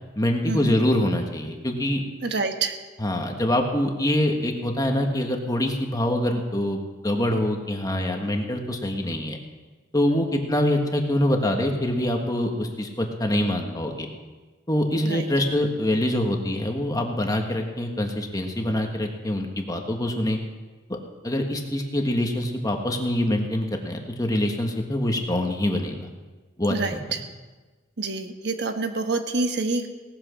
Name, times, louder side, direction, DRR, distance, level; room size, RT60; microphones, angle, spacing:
voice 1, 0.2-2.0 3.0-9.4 9.9-14.1 14.7-20.4 20.9-21.0 21.2-26.1 26.6-26.7 27.1-27.2, left 1 dB, 20° left, 3 dB, 1.6 m, -25 dB
voice 2, 2.2-2.8 15.0-15.2 26.7-27.2 28.0-29.9, right 3 dB, 65° right, 6 dB, 1.2 m, -27 dB
18.0 x 8.5 x 6.4 m, 1.3 s
head